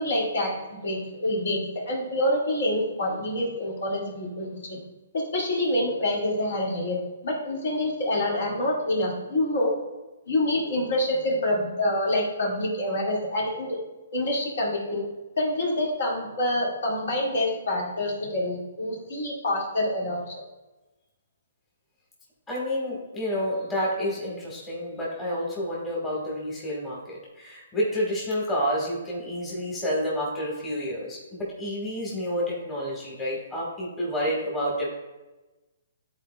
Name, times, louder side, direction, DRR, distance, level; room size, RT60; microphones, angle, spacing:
voice 1, 0.0-4.8 5.1-9.7 10.3-13.8 14.1-15.1 15.4-20.3, left 1 dB, 60° left, -3 dB, 1.9 m, -27 dB
voice 2, 22.5-34.9, equal, 10° left, -6 dB, 1.5 m, -29 dB
10.5 x 4.2 x 2.2 m, 1.1 s
hypercardioid pair, 155°, 0 cm